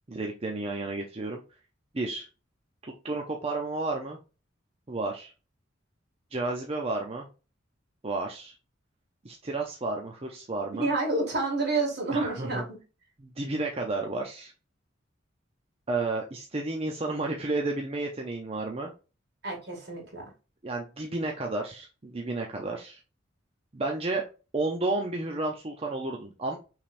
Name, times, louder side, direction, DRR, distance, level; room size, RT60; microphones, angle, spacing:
voice 1, 0.1-1.4 1.9-2.3 2.8-4.2 4.9-5.3 6.3-7.3 8.0-8.5 9.2-10.9 12.1-12.6 13.2-14.5 15.9-18.9 20.6-23.0 23.7-24.2 24.5-26.6, right 2 dB, 30° right, 1 dB, 0.6 m, -32 dB
voice 2, 10.7-12.6 19.4-20.3, right 3 dB, 60° right, 0 dB, 2.1 m, -29 dB
5.8 x 3.3 x 2.5 m, 0.32 s
head